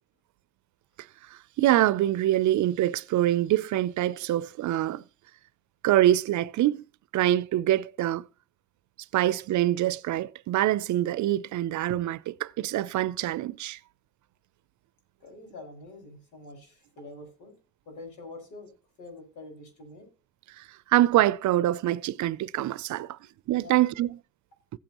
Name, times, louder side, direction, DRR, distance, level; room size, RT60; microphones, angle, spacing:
voice 1, 1.3-5.0 5.8-6.8 7.1-8.3 9.1-13.8 20.6-20.7 20.9-23.2 23.5-24.2, right 14 dB, 70° right, 0.6 m, -25 dB
voice 2, 15.2-17.5 17.9-18.7 19.0-20.1 23.6-23.8, left 2 dB, 80° left, 5.7 m, -45 dB
16.0 x 9.0 x 3.0 m
cardioid pair, 90°, 30 cm